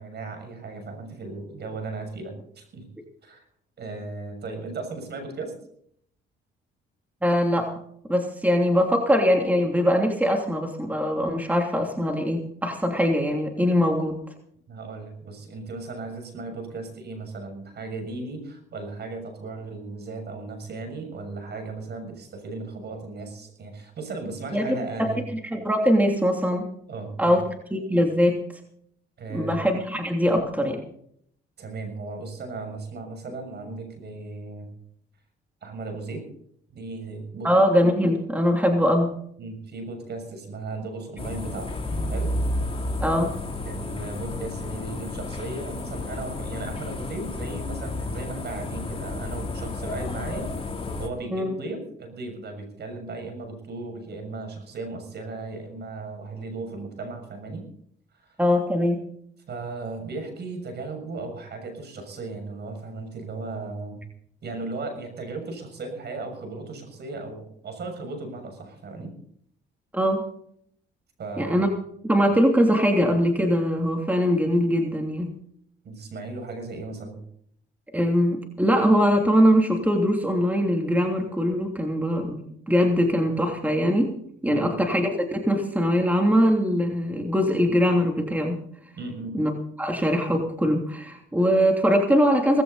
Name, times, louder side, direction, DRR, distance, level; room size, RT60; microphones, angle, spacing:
voice 1, 0.0-2.8 3.2-3.4 3.8-5.5 14.7-25.3 26.9-27.4 29.2-29.5 31.6-34.7 35.6-36.2 36.7-37.5 39.4-41.7 42.1-42.3 43.6-50.5 51.0-57.6 58.2-58.3 59.5-64.0 64.4-69.1 71.2-71.7 75.8-77.2 84.5-84.8 89.0-89.4, right 3 dB, 55° right, 5 dB, 6.7 m, -36 dB
voice 2, 7.2-7.7 8.1-14.2 24.5-24.6 25.0-26.7 27.2-27.4 27.7-28.4 29.3-30.8 37.4-39.1 43.0-43.3 51.3-51.5 58.4-59.0 69.9-70.2 71.4-71.7 72.0-75.3 77.9-84.1 84.4-88.6 89.3-89.5 89.8-92.6, equal, 10° right, 2 dB, 3.0 m, -22 dB
sound 1, 41.2-51.1, left 2 dB, 30° left, 3.2 m, -31 dB
19.0 x 16.0 x 4.1 m, 0.66 s
cardioid pair, 90°, 20 cm